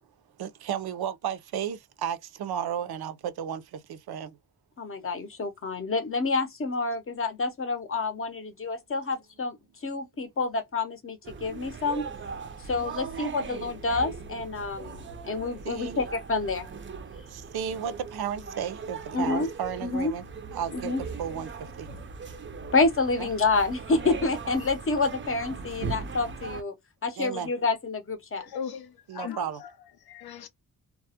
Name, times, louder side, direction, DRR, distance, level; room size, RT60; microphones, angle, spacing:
voice 1, 0.4-4.4 15.6-16.0 17.3-20.3 20.5-21.9 23.2-23.3 27.2-27.5 29.1-29.6, right 8 dB, 85° right, 0.5 m, -33 dB
voice 2, 4.8-9.6 9.8-12.0 12.7-16.7 19.1-19.5 19.8-20.1 20.7-21.0 22.7-26.7 27.0-28.4, left 3 dB, 35° left, 0.6 m, -28 dB
sound 1, 11.2-26.6, right 5 dB, 35° right, 0.4 m, -39 dB
voice 3, 28.4-29.7 30.1-30.5, left 7 dB, 80° left, 0.5 m, -38 dB
2.2 x 2.0 x 2.7 m
wide cardioid pair, 100°, 37 cm